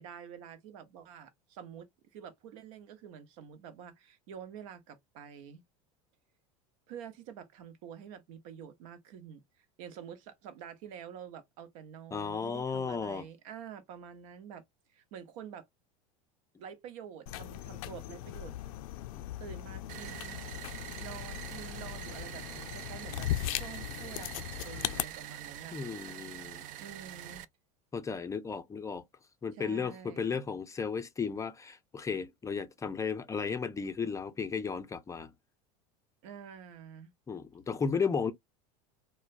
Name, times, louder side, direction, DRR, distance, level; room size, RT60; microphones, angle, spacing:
voice 1, 0.0-5.6 6.9-14.6 14.9-15.7 16.6-18.7 19.4-20.4 21.0-25.8 26.8-27.4 29.5-30.4 36.2-37.1, right 8 dB, 70° right, 0.8 m, -48 dB
voice 2, 12.1-13.3 25.7-26.7 27.9-29.0 29.4-35.3 37.3-38.3, left 5 dB, 15° left, 0.4 m, -34 dB
sound 1, 17.3-25.0, left 14 dB, 80° left, 0.4 m, -38 dB
sound 2, 19.9-27.4, right 12 dB, 45° right, 0.4 m, -45 dB
3.1 x 2.1 x 2.5 m
supercardioid pair, 110°, 18 cm